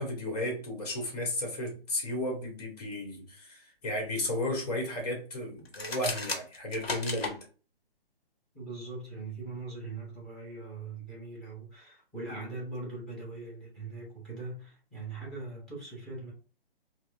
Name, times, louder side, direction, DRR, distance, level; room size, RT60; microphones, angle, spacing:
voice 1, 0.0-7.4, left 1 dB, 40° left, 1.6 m, -34 dB
sound 1, 5.7-7.4, left 3 dB, 75° left, 0.9 m, -34 dB
voice 2, 8.5-16.3, right 3 dB, ahead, 0.9 m, -41 dB
4.6 x 2.1 x 2.6 m
figure-of-eight pair, 135°, 30 cm